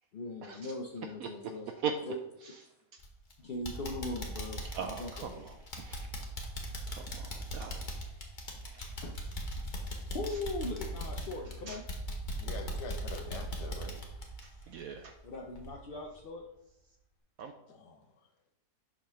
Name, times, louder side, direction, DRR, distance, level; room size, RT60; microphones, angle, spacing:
voice 1, 0.1-1.7 2.1-2.2 3.4-5.4 8.8-9.2 10.1-11.9 15.2-16.4, left 2 dB, 60° left, 1 dB, 0.6 m, -40 dB
sound 1, 3.0-3.3 3.6-15.2 15.5-15.7 16.2-16.3, equal, 35° left, 1.1 m, -39 dB
voice 2, 4.7-6.1 6.9-7.3 7.5-7.8 8.6-8.8 11.7-11.8 14.4-15.1 17.4-17.5, right 7 dB, 70° right, 6 dB, 0.9 m, -39 dB
voice 3, 12.4-14.0 17.7-18.1, left 3 dB, 80° left, 5 dB, 1.6 m, -45 dB
7.3 x 3.7 x 5.7 m, 0.86 s
omnidirectional pair, 1.7 m